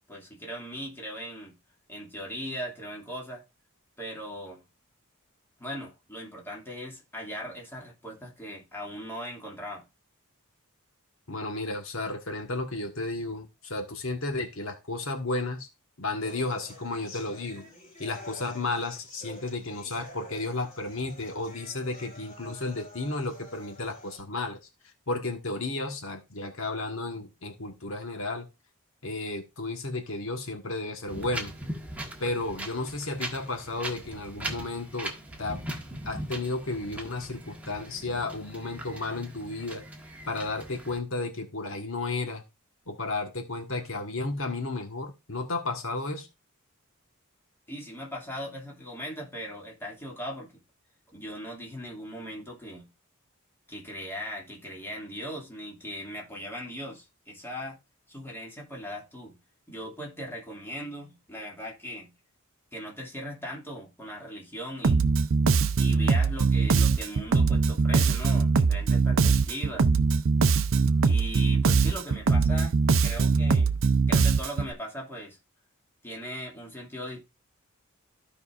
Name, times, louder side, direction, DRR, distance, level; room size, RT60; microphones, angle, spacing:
voice 1, 0.1-1.6 1.9-3.4 4.0-4.6 5.6-9.8 47.7-50.5 51.1-52.9 53.7-57.8 58.1-59.4 59.7-62.1 62.7-65.1 65.8-69.9 71.0-72.8 73.0-73.7 74.1-75.4 76.0-77.3, equal, 10° left, 2.4 m, -39 dB
voice 2, 11.3-15.7 16.0-17.6 18.0-24.6 24.8-28.5 29.0-31.5 32.2-35.1 35.4-35.6 36.0-39.8 40.3-42.4 42.9-46.3, left 2 dB, 65° left, 1.4 m, -33 dB
sound 1, 16.2-24.2, left 1 dB, 35° left, 4.2 m, -48 dB
Wind, 31.1-41.0, right 1 dB, 5° right, 1.5 m, -40 dB
Bass guitar, 64.8-74.7, right 4 dB, 60° right, 0.5 m, -22 dB
15.0 x 5.3 x 2.5 m
head